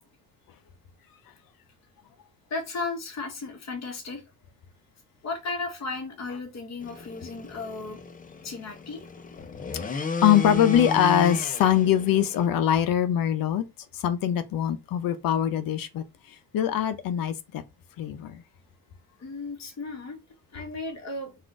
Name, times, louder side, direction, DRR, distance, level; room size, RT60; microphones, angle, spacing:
voice 1, 2.5-4.2 5.2-8.0 8.4-9.0 19.2-20.2 20.5-21.3, left 3 dB, 50° left, 1.8 m, -35 dB
sound 1, 6.8-12.5, left 4 dB, 25° left, 0.6 m, -34 dB
voice 2, 9.8-13.6 13.9-16.0 16.5-17.6 18.0-18.4, left 10 dB, 70° left, 0.7 m, -23 dB
4.1 x 2.5 x 4.8 m
cardioid pair, 105°, 36 cm